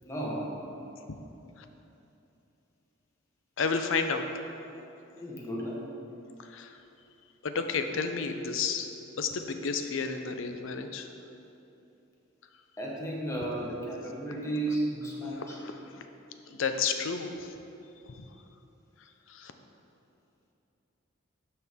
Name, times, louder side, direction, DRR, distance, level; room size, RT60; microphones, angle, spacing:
voice 1, 0.0-0.5 5.1-5.9 12.8-15.6, right 1 dB, 15° left, -4 dB, 1.1 m, -33 dB
voice 2, 3.6-4.2 6.4-6.8 7.4-8.9 9.2-11.1 15.2-16.1 16.5-17.5 18.0-18.3 19.0-19.5, left 5 dB, 65° left, 7 dB, 0.5 m, -32 dB
12.0 x 4.5 x 3.6 m, 2.9 s
head